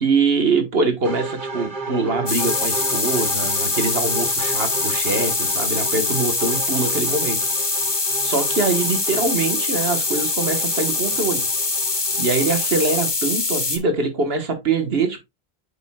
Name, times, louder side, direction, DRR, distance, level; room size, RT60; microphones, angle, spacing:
voice 1, 0.0-7.4 8.2-11.4 12.1-15.2, right 4 dB, 70° right, 1.6 m, -23 dB
sound 1, 1.0-13.1, right 2 dB, 50° right, 2.5 m, -34 dB
sound 2, 2.3-13.8, left 3 dB, 25° left, 0.9 m, -23 dB
8.5 x 5.4 x 2.3 m
omnidirectional pair, 1.0 m